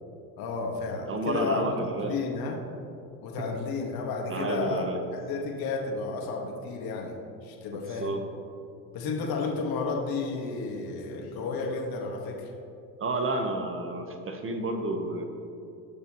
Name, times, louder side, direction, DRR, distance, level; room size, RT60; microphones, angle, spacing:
voice 1, 0.4-1.7 2.0-2.6 3.2-4.8 5.2-7.1 7.4-8.1 8.9-12.5, left 4 dB, 50° left, 0 dB, 1.9 m, -32 dB
voice 2, 1.1-2.2 3.4-3.5 4.3-5.0 7.7-8.2 13.0-15.2, right 2 dB, 30° right, 5 dB, 1.2 m, -31 dB
19.0 x 6.7 x 3.1 m, 2.7 s
hypercardioid pair, 75°, 45 cm